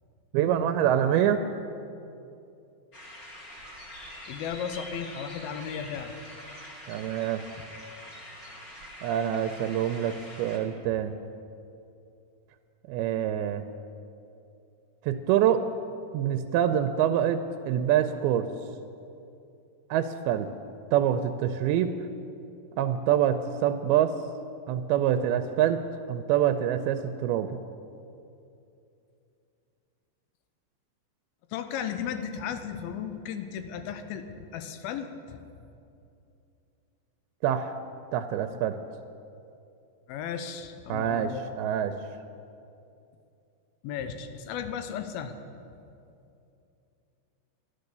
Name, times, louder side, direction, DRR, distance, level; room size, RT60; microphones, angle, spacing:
voice 1, 0.3-1.4 6.9-7.4 9.0-11.1 12.9-13.6 15.0-15.6 16.1-18.5 19.9-20.5 20.9-21.9 22.8-24.2 24.7-25.8 26.1-27.6 37.4-37.7 38.1-38.8 40.9-41.9, right 10 dB, 85° right, 8 dB, 2.5 m, -25 dB
sound 1, 2.9-10.6, equal, 35° left, 1.4 m, -45 dB
voice 2, 4.3-6.1 31.5-35.4 40.1-41.5 43.8-45.3, left 8 dB, 85° left, 8 dB, 2.6 m, -35 dB
11.5 x 11.5 x 6.7 m, 2.6 s
omnidirectional pair, 4.4 m